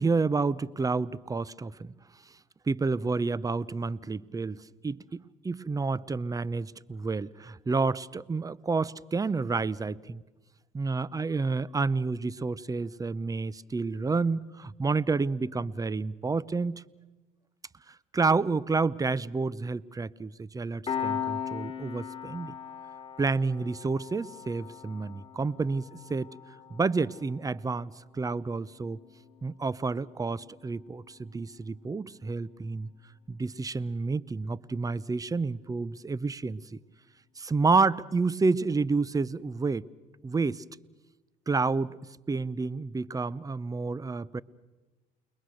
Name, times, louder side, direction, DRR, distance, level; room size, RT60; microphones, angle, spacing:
voice 1, 0.0-1.9 2.7-10.2 10.7-16.8 17.9-22.6 23.2-26.3 26.7-29.0 29.4-32.9 33.3-36.8 37.4-39.8 40.2-40.6 41.5-42.0 42.3-44.4, right 4 dB, 15° right, 21 dB, 0.7 m, -29 dB
Piano, 20.9-31.9, left 8 dB, 25° left, 3.6 m, -40 dB
29.5 x 21.5 x 6.5 m, 1.2 s
supercardioid pair, 85°, 21 cm